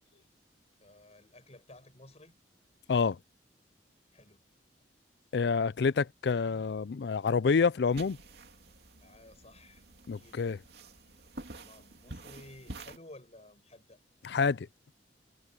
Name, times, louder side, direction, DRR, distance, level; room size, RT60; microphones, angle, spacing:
voice 1, 0.8-2.3 4.1-4.4 9.0-9.8 10.2-10.4 11.5-14.0, left 1 dB, 40° left, 7.6 m, -54 dB
voice 2, 5.3-8.2 10.1-10.6 14.2-14.7, left 5 dB, 65° left, 0.4 m, -27 dB
sound 1, 7.9-13.0, right 2 dB, 65° right, 2.8 m, -48 dB
head